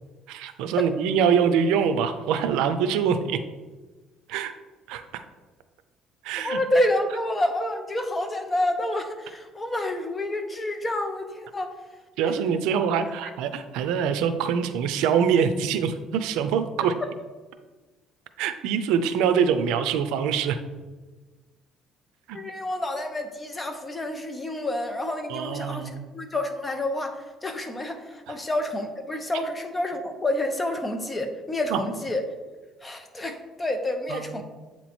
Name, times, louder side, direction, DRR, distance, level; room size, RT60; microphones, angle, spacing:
voice 1, 0.3-3.4 4.3-4.5 4.9-5.2 6.2-6.6 12.2-16.9 18.4-20.6 22.3-22.4 25.3-26.0 28.3-28.4 31.7-31.8 34.1-34.4, right 7 dB, 90° right, 9 dB, 0.5 m, -24 dB
voice 2, 6.4-11.7 12.7-12.8 22.3-32.2 32.8-34.4, left 1 dB, 20° left, 6 dB, 0.7 m, -28 dB
8.2 x 3.0 x 4.3 m, 1.2 s
cardioid pair, 130°, 0 cm